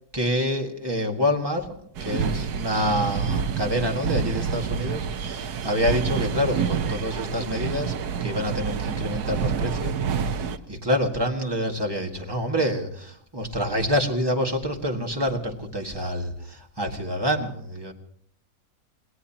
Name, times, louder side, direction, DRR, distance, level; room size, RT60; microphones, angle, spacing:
voice 1, 0.1-1.7 2.0-10.0 10.2-17.9, equal, 15° right, 2 dB, 1.7 m, -27 dB
sound 1, 1.9-10.6, right 6 dB, 70° right, 1.3 m, -28 dB
27.5 x 18.0 x 2.9 m, 0.64 s
omnidirectional pair, 1.8 m